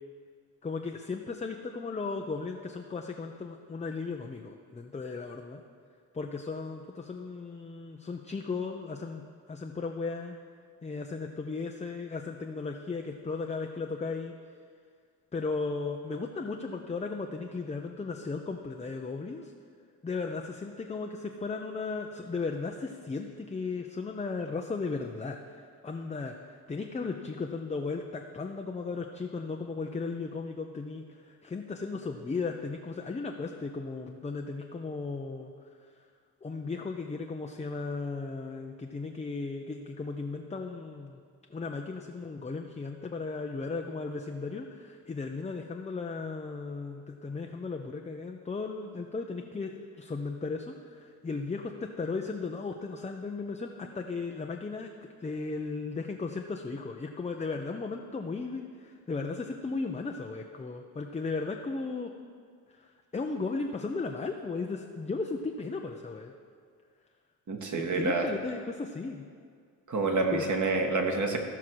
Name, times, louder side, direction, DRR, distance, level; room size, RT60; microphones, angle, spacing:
voice 1, 0.6-5.6 6.1-9.2 9.5-10.4 10.8-14.3 15.3-19.5 20.0-35.5 36.4-41.2 41.5-62.1 62.8-62.9 63.1-66.3 67.7-69.2 70.3-70.5, left 4 dB, 15° left, 2 dB, 0.7 m, -36 dB
voice 2, 67.5-68.3 69.9-71.4, right 3 dB, 40° right, 2 dB, 1.8 m, -28 dB
15.0 x 5.9 x 4.7 m, 2.1 s
hypercardioid pair, 50°, 47 cm